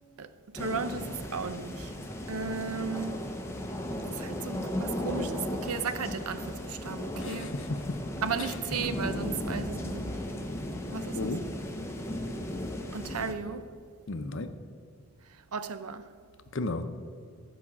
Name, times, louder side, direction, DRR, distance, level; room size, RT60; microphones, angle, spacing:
voice 1, 0.5-1.9 2.3-3.2 4.2-7.5 8.2-10.1 10.9-11.2 12.9-13.6 15.5-16.0, right 5 dB, 85° right, 0.6 m, -35 dB
sound 1, 0.6-13.3, left 1 dB, 10° left, 0.8 m, -36 dB
voice 2, 7.1-8.0 8.4-8.5 11.1-11.4 14.1-14.5 16.5-16.9, left 2 dB, 55° left, 0.7 m, -34 dB
12.5 x 5.1 x 7.2 m
head